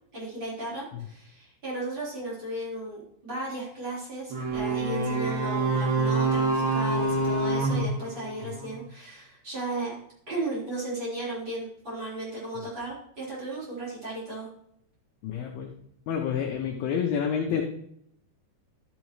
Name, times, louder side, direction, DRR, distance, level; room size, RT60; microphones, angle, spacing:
voice 1, 0.1-9.9 10.3-14.5, right 2 dB, 25° right, -6 dB, 4.3 m, -35 dB
sound 1, 4.3-8.8, right 3 dB, 55° right, 4.3 m, -26 dB
voice 2, 15.2-15.7 16.1-17.6, left 7 dB, 80° left, 2 dB, 2.2 m, -28 dB
12.5 x 7.3 x 3.1 m, 0.72 s
omnidirectional pair, 5.3 m